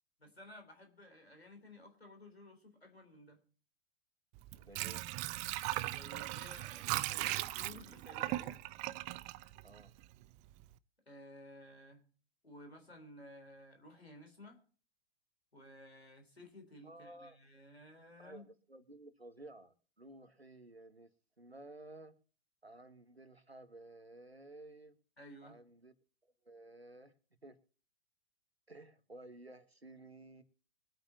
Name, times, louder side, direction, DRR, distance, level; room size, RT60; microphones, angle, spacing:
voice 1, 0.2-3.4 5.9-8.6 11.1-12.0 12.4-14.6 15.5-18.4 25.2-25.6, left 1 dB, 85° left, 4 dB, 3.8 m, -55 dB
Water / Sink (filling or washing), 4.3-10.2 10.6-10.7, right 17 dB, 25° right, 0.4 m, -38 dB
voice 2, 4.6-5.1 9.6-9.9 16.8-17.4 18.2-21.1 21.4-22.1 22.6-24.9 25.4-25.9 26.2-27.1 27.4-27.6 28.7-30.4, right 2 dB, 90° right, 10 dB, 1.6 m, -54 dB
23.5 x 9.1 x 2.8 m, 0.41 s
figure-of-eight pair, 100°, 30 cm